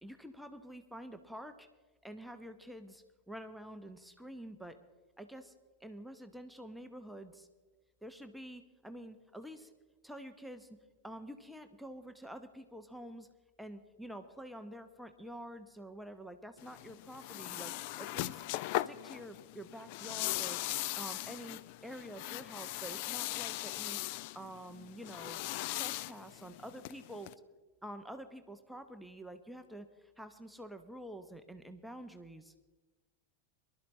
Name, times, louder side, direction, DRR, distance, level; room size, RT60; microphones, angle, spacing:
voice 1, 0.0-1.7 2.0-4.8 5.2-5.5 5.8-7.5 8.0-9.7 10.0-10.7 11.0-13.3 13.6-18.4 18.7-20.6 21.0-24.0 24.3-25.4 25.7-27.3 27.8-32.5, right 1 dB, ahead, 7 dB, 0.8 m, -48 dB
sound 1, 16.6-27.3, left 17 dB, 45° left, 0.3 m, -39 dB
23.5 x 12.0 x 3.2 m, 1.2 s
figure-of-eight pair, 90°, 0 cm